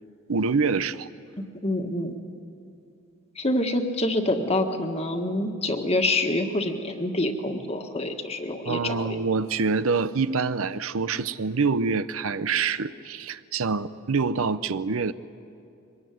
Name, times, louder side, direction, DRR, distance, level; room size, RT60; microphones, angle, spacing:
voice 1, 0.3-1.1 8.6-15.1, right 4 dB, 75° right, 14 dB, 0.7 m, -26 dB
voice 2, 1.4-2.1 3.4-9.1, left 1 dB, 30° left, 5 dB, 1.6 m, -26 dB
24.0 x 20.0 x 9.3 m, 2.6 s
head